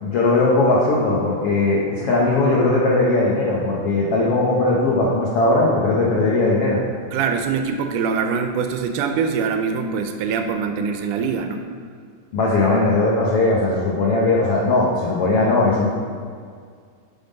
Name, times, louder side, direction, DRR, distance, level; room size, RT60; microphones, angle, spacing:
voice 1, 0.0-6.8 12.3-15.9, left 2 dB, 75° left, -4 dB, 1.3 m, -19 dB
voice 2, 7.1-11.6, right 6 dB, 80° right, 6 dB, 2.0 m, -23 dB
7.1 x 5.8 x 5.2 m, 2.1 s
omnidirectional pair, 3.7 m